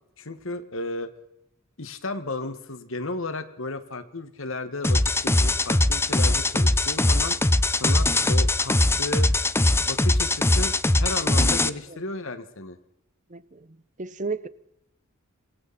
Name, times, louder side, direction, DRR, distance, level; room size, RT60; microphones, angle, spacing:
voice 1, 0.2-1.1 1.8-7.4 7.7-9.3 9.8-10.7 11.0-12.8, left 2 dB, 65° left, 1.9 m, -33 dB
sound 1, 4.8-11.7, left 2 dB, 10° left, 0.8 m, -21 dB
voice 2, 13.3-13.6 14.0-14.5, right 4 dB, 35° right, 1.0 m, -32 dB
27.5 x 23.0 x 4.3 m
head